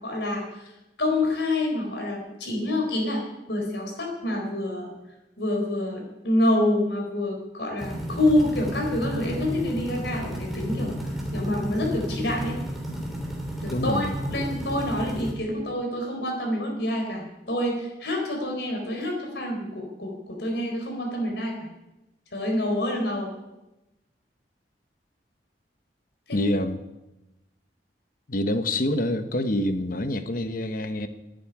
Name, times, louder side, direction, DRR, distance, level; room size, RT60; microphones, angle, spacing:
voice 1, 0.0-0.7 1.0-3.2 3.5-4.9 5.4-10.9 11.3-12.6 13.6-21.7 22.3-23.3 26.3-26.4, left 1 dB, 70° left, 1 dB, 4.2 m, -27 dB
sound 1, 7.8-15.3, equal, ahead, 3.2 m, -32 dB
voice 2, 13.7-14.1 26.3-26.8 28.3-31.1, left 1 dB, 50° left, 9 dB, 1.1 m, -26 dB
11.5 x 9.3 x 9.9 m, 0.98 s
head